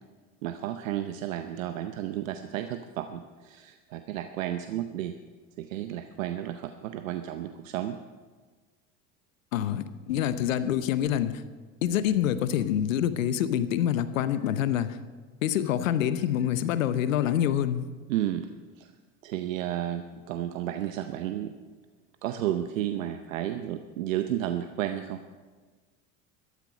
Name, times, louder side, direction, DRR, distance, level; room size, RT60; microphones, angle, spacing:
voice 1, 0.4-5.1 5.6-8.0 18.1-18.5 18.8-18.9 19.2-21.5 22.2-25.2, right 12 dB, 85° right, 8 dB, 0.7 m, -32 dB
voice 2, 9.5-11.4 11.8-15.0 15.4-17.9, left 10 dB, 85° left, 13 dB, 0.8 m, -26 dB
13.5 x 12.5 x 5.3 m, 1.4 s
hypercardioid pair, 70°, 39 cm